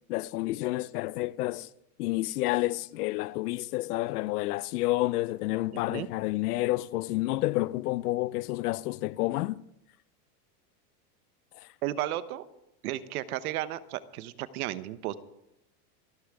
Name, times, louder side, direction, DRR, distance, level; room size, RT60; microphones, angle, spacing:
voice 1, 0.1-1.7 2.0-9.6, left 18 dB, 75° left, 0.6 m, -29 dB
voice 2, 11.8-12.5 12.8-15.2, right 14 dB, 65° right, 1.0 m, -33 dB
27.5 x 12.0 x 3.6 m
supercardioid pair, 180°, 47 cm